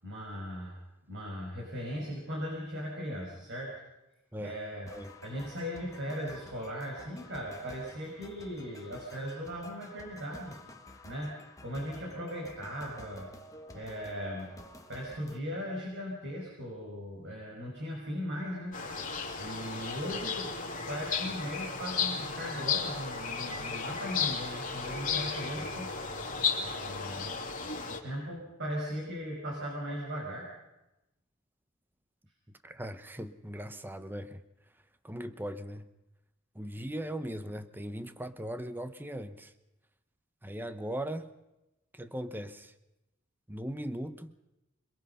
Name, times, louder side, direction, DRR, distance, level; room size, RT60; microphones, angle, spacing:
voice 1, 0.0-0.8 1.1-3.8 4.4-4.9 5.2-10.6 11.0-13.3 13.7-14.5 14.9-18.8 19.4-20.5 20.9-25.9 26.6-27.4 27.9-30.5, equal, 55° right, 5.6 m, -38 dB
sound 1, 4.9-15.4, left 1 dB, 15° left, 1.3 m, -51 dB
sound 2, 18.7-28.0, left 5 dB, 40° left, 2.9 m, -34 dB
voice 2, 32.6-34.4 35.0-35.9 36.5-39.5 40.4-41.3 41.9-42.7 43.5-44.4, right 1 dB, 10° right, 0.8 m, -39 dB
26.0 x 21.5 x 5.6 m
head